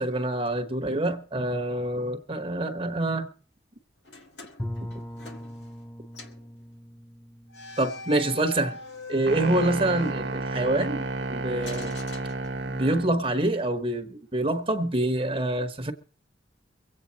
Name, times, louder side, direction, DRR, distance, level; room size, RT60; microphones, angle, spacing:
voice 1, 0.0-3.3 7.8-8.8 9.1-11.9 12.7-15.9, right 1 dB, 30° right, 1.1 m, -26 dB
sound 1, 4.1-5.9 6.1-6.5 7.5-10.7 11.6-13.0, left 3 dB, 80° left, 1.8 m, -43 dB
Bowed string instrument, 4.6-9.4, left 1 dB, 10° left, 0.6 m, -41 dB
sound 2, 9.3-13.2, right 2 dB, 85° right, 1.0 m, -31 dB
24.0 x 8.7 x 4.1 m
head